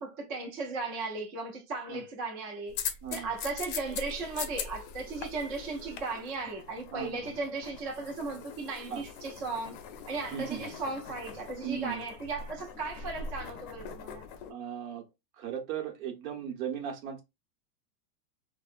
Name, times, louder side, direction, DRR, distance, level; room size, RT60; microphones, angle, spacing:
voice 1, 0.0-9.8 10.1-14.2, right 3 dB, 25° right, 0.3 m, -36 dB
sound 1, 2.7-14.5, left 6 dB, 45° left, 0.5 m, -42 dB
voice 2, 6.9-7.3 8.9-9.0 10.3-10.6 11.6-12.0 14.5-15.1 15.4-17.2, right 9 dB, 60° right, 0.9 m, -37 dB
2.7 x 2.1 x 2.4 m
supercardioid pair, 145°, 46 cm